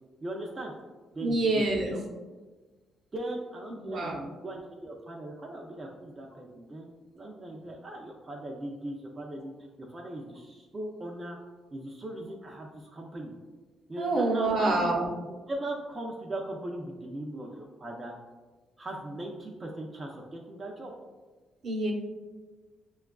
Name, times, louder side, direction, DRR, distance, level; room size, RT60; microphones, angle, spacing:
voice 1, 0.2-0.7 1.1-2.0 3.1-11.4 11.7-13.3 13.9-14.9 15.2-18.1 18.8-20.9, right 1 dB, 30° right, -2 dB, 0.5 m, -39 dB
voice 2, 1.2-1.9 3.8-4.2 14.0-15.1 21.6-21.9, right 2 dB, 60° right, 0 dB, 0.8 m, -26 dB
5.9 x 2.3 x 2.2 m, 1.3 s
cardioid pair, 90°, 0 cm